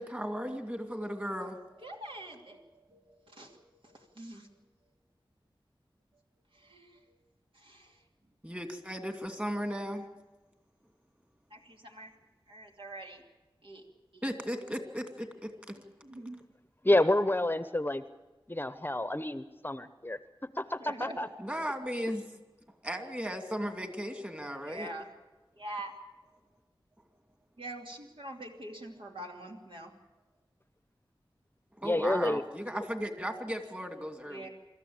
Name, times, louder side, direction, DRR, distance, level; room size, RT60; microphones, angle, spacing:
voice 1, 0.0-1.6 8.4-10.1 14.2-15.8 21.4-22.3 22.8-24.9 31.8-34.5, equal, 15° right, 6 dB, 2.6 m, -36 dB
voice 2, 1.8-4.5 6.5-7.2 7.5-8.0 11.5-12.1 12.5-13.2 13.6-13.9 14.1-14.3 16.0-16.4 20.8-21.2 24.7-25.1 25.6-25.9 26.3-26.4 27.6-29.9 34.3-34.5, right 1 dB, 70° right, 1 dB, 2.9 m, -45 dB
voice 3, 16.8-18.0 18.5-20.2 20.6-21.3 31.8-32.4, left 1 dB, 25° left, 12 dB, 0.8 m, -28 dB
25.5 x 13.5 x 8.8 m, 1.1 s
wide cardioid pair, 60°, 9 cm